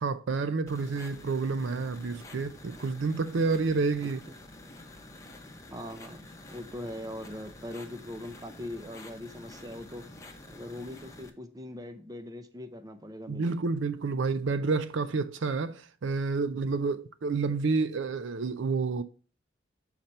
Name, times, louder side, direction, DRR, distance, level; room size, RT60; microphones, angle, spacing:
voice 1, 0.0-4.2 13.3-19.0, right 4 dB, 65° right, 0.4 m, -29 dB
sound 1, 0.7-11.3, left 2 dB, 15° left, 0.8 m, -48 dB
voice 2, 5.7-6.2 6.5-10.1 10.4-13.5, left 1 dB, 20° right, 0.6 m, -41 dB
6.6 x 4.4 x 5.3 m
head